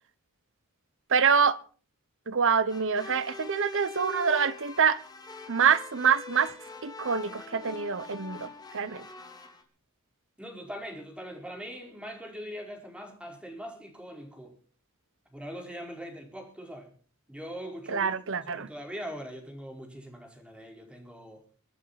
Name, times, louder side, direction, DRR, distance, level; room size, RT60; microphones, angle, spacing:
voice 1, 1.1-1.6 2.3-5.0 5.5-6.5 6.8-9.0 17.9-18.7, right 6 dB, 60° right, 1.1 m, -26 dB
sound 1, 2.7-9.6, left 3 dB, 20° left, 2.9 m, -43 dB
voice 2, 10.4-14.5 15.3-16.9 17.3-21.4, equal, 5° right, 4.8 m, -42 dB
24.0 x 8.3 x 5.9 m
head